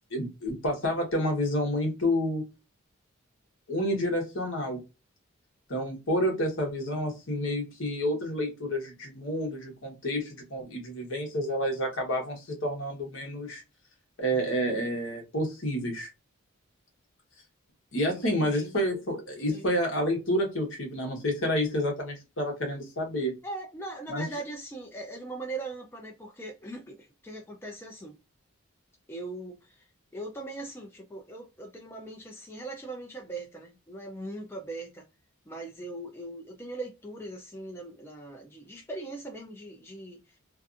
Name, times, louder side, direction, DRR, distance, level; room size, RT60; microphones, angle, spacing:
voice 1, 0.1-2.4 3.7-4.8 5.7-13.6 14.2-16.1 17.9-23.3 24.1-24.2, equal, 65° left, 1.0 m, -29 dB
voice 2, 18.1-18.7 19.4-19.7 23.4-28.2 29.1-29.9 30.1-35.1 35.5-40.4, right 2 dB, 10° left, 0.4 m, -40 dB
2.5 x 2.4 x 2.4 m
head